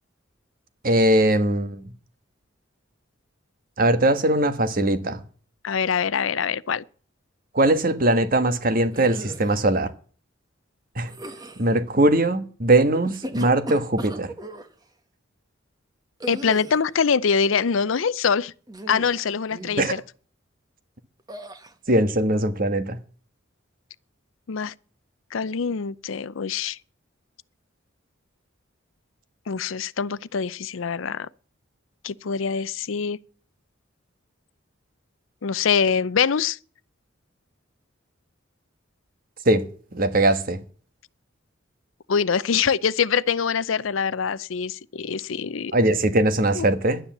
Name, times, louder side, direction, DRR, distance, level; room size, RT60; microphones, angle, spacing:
voice 1, 0.8-1.8 3.8-5.2 7.5-9.9 10.9-11.1 11.6-14.3 19.8-19.9 21.9-23.0 39.4-39.7 39.9-40.6 45.7-47.0, right 1 dB, 45° right, 1.3 m, -20 dB
voice 2, 5.6-6.8 16.3-18.5 18.9-20.0 24.5-24.7 25.3-26.8 29.5-31.3 32.0-33.2 35.4-36.6 42.1-45.8 46.5-46.6, left 6 dB, 80° left, 0.5 m, -24 dB
sound 1, 8.9-9.6 11.0-11.7 12.9-14.7 16.2-16.9 18.7-19.2 19.5-19.9 21.3-21.7, right 1 dB, 20° right, 1.2 m, -37 dB
11.5 x 9.8 x 7.2 m
head